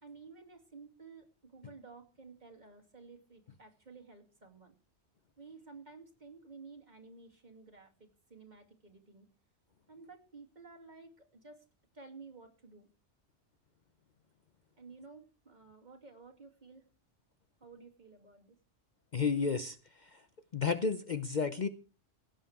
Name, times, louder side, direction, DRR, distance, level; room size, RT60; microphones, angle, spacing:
voice 1, 0.0-4.7 5.4-9.3 9.9-11.7 11.9-12.9 14.8-16.8 17.6-18.6, right 4 dB, 40° right, 3 dB, 2.6 m, -53 dB
voice 2, 19.1-20.2 20.5-21.7, left 5 dB, 45° left, 10 dB, 0.8 m, -32 dB
16.5 x 9.2 x 4.7 m, 0.36 s
omnidirectional pair, 1.2 m